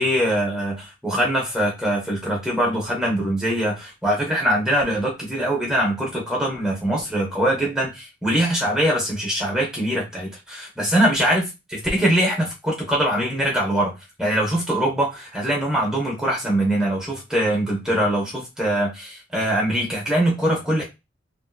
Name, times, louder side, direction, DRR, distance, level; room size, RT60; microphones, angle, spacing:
voice 1, 0.0-13.9 14.2-20.8, right 1 dB, 5° right, -2 dB, 1.2 m, -22 dB
3.5 x 2.9 x 2.4 m, 0.23 s
head